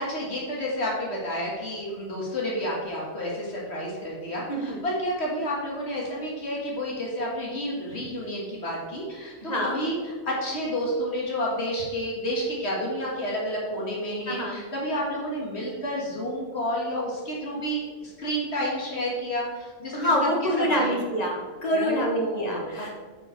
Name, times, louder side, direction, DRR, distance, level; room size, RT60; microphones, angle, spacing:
voice 1, 0.0-20.1 20.4-21.0 21.7-22.9, equal, 70° left, -3 dB, 1.9 m, -30 dB
voice 2, 4.5-4.8 9.4-9.8 14.3-14.6 19.9-22.9, equal, 35° left, 0 dB, 1.5 m, -26 dB
8.9 x 4.7 x 4.5 m, 1.4 s
omnidirectional pair, 1.2 m